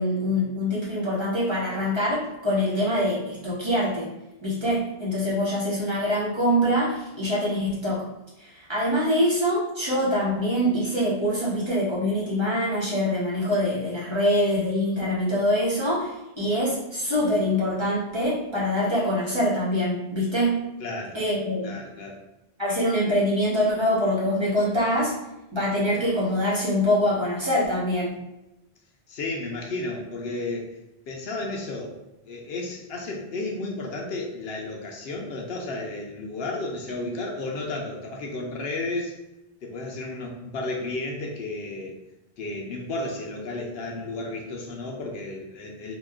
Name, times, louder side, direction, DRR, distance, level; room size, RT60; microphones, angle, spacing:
voice 1, 0.0-4.1 4.4-8.1 8.4-20.6 21.1-21.8 22.6-25.1 25.5-28.2, equal, 30° right, -8 dB, 0.9 m, -24 dB
voice 2, 20.8-21.2 21.6-22.2 29.1-30.8 31.1-32.0 32.2-39.2 39.6-42.0 42.4-45.9, left 2 dB, 70° left, 0 dB, 0.8 m, -33 dB
2.9 x 2.3 x 3.5 m, 0.92 s
omnidirectional pair, 1.1 m